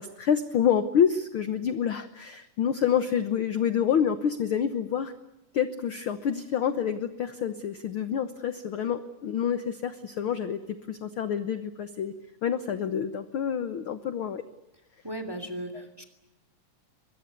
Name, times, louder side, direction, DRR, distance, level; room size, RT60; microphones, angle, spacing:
voice 1, 0.0-5.1 5.5-12.1 12.4-14.4 15.7-15.8, left 8 dB, 60° left, 10 dB, 1.5 m, -27 dB
voice 2, 15.0-16.0, right 1 dB, 10° right, 9 dB, 2.6 m, -36 dB
23.5 x 22.5 x 9.4 m, 0.94 s
omnidirectional pair, 3.5 m